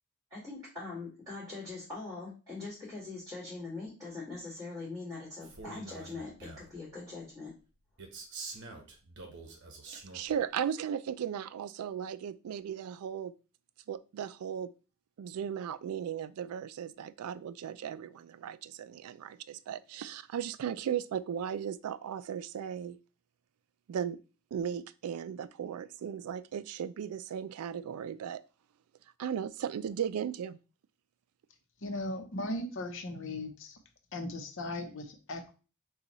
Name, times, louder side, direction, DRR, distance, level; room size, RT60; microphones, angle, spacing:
voice 1, 0.3-7.5, left 3 dB, 15° right, 2.1 m, -42 dB
Male speech man speaking, 5.4-6.8 8.0-10.4, right 3 dB, 55° right, 0.9 m, -46 dB
voice 2, 9.9-13.3 13.9-14.7 15.2-23.0 23.9-24.2 24.5-28.4 29.2-30.6, right 8 dB, 80° right, 0.3 m, -36 dB
voice 3, 31.8-33.8 34.1-35.5, left 1 dB, 60° left, 0.8 m, -37 dB
6.5 x 2.3 x 3.0 m
head